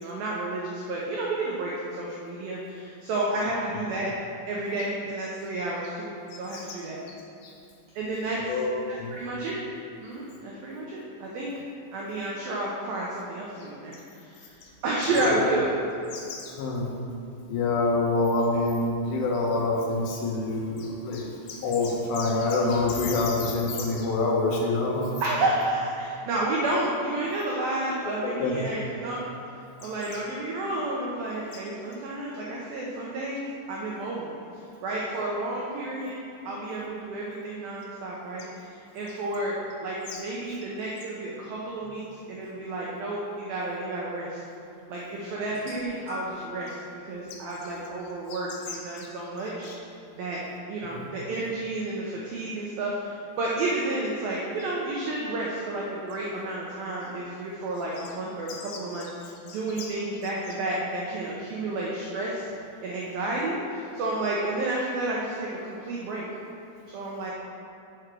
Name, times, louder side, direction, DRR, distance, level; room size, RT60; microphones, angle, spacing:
voice 1, 0.0-4.1 4.5-7.0 8.0-8.6 8.9-9.6 10.0-11.5 11.9-14.6 14.8-15.7 25.2-29.3 29.8-34.3 34.8-44.4 44.9-49.9 50.2-50.4 50.7-62.5 62.8-66.3 66.9-67.3, right 2 dB, 85° right, -4 dB, 2.0 m, -31 dB
voice 2, 15.1-15.5 16.1-16.9 17.5-25.2 28.0-28.5 29.8-30.2 40.1-40.2 47.3-47.4 48.3-48.4 48.9-49.1 49.7-49.8 50.8-51.0 58.5-58.8 59.5-59.9, left 3 dB, 75° left, -2 dB, 2.9 m, -27 dB
sound 1, 45.5-46.6 47.5-47.7 48.7-48.8, left 2 dB, 30° right, 1.5 m, -42 dB
7.8 x 6.5 x 6.2 m, 2.6 s
omnidirectional pair, 5.5 m